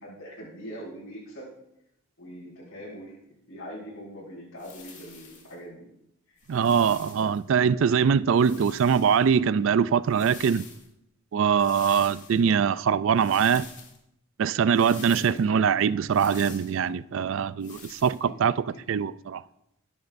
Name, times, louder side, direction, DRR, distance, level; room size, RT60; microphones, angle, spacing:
voice 1, 0.0-1.5 2.2-3.2 3.5-5.9 15.1-15.6 18.2-18.3, equal, 70° left, 5.7 m, -42 dB
sound 1, 4.6-5.5 6.4-7.4 8.3-9.3 10.0-10.9 11.5-12.4 13.2-14.0 14.7-15.4 16.1-16.8 17.6-18.2, left 6 dB, 35° left, 1.8 m, -46 dB
voice 2, 6.5-10.7 11.3-13.7 14.4-18.6 18.9-19.4, right 7 dB, 60° right, 0.3 m, -23 dB
21.5 x 10.5 x 2.6 m
head